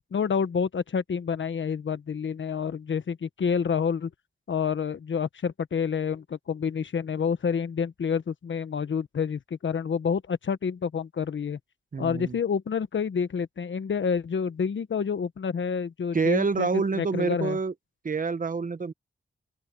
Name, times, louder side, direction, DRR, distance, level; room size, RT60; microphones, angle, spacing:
voice 1, 0.1-4.1 4.5-11.6 12.0-17.6, left 6 dB, 70° left, 1.1 m, -28 dB
voice 2, 11.9-12.4 16.1-17.7 18.0-18.9, right 4 dB, 40° right, 1.0 m, -27 dB
open air
wide cardioid pair, 125°, 20 cm